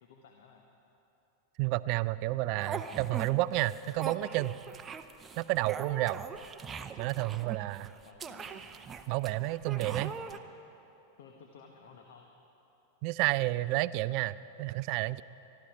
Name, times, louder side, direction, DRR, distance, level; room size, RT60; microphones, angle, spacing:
voice 1, 0.0-0.7 7.8-8.7 9.7-10.4 11.2-12.3, left 5 dB, 55° left, 3 dB, 1.2 m, -54 dB
voice 2, 1.6-4.6 5.4-6.2 7.0-7.9 9.1-10.1 13.0-15.2, right 18 dB, 45° right, 18 dB, 0.4 m, -30 dB
sound 1, 2.6-3.3 3.5-10.4, right 5 dB, 20° right, 0.7 m, -42 dB
24.0 x 13.0 x 4.7 m, 3.0 s
figure-of-eight pair, 90°, 0 cm